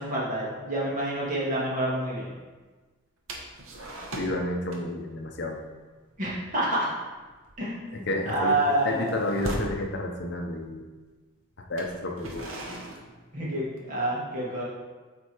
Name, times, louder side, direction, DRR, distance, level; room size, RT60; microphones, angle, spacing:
voice 1, 0.0-2.3 6.2-6.9 7.6-9.1 13.3-14.6, right 1 dB, 40° right, -6 dB, 1.7 m, -28 dB
sound 1, 3.3-4.4 4.7-5.0 5.3-5.6 6.0-6.2 6.5-6.8 7.2-9.8 10.7-10.8 11.6-13.9, right 1 dB, 80° right, 1.0 m, -39 dB
voice 2, 4.2-5.6 7.9-10.8 11.7-12.4, left 2 dB, 55° left, 2 dB, 0.7 m, -30 dB
7.7 x 3.5 x 4.5 m, 1.3 s
head